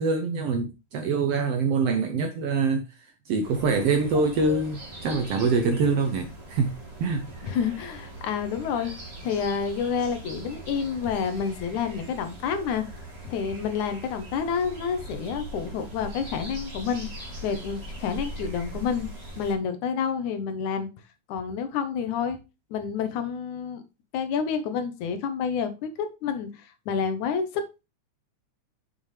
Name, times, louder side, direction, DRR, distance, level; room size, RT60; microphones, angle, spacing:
voice 1, 0.0-7.6, right 4 dB, 70° right, 1.5 m, -25 dB
sound 1, 3.4-19.5, right 1 dB, 20° right, 2.1 m, -41 dB
voice 2, 7.4-8.9 9.2-12.9 13.2-17.1 17.4-19.1 19.4-20.9 21.3-22.4 22.7-23.8 24.1-27.6, left 6 dB, 75° left, 2.4 m, -29 dB
7.2 x 6.2 x 3.2 m
omnidirectional pair, 3.6 m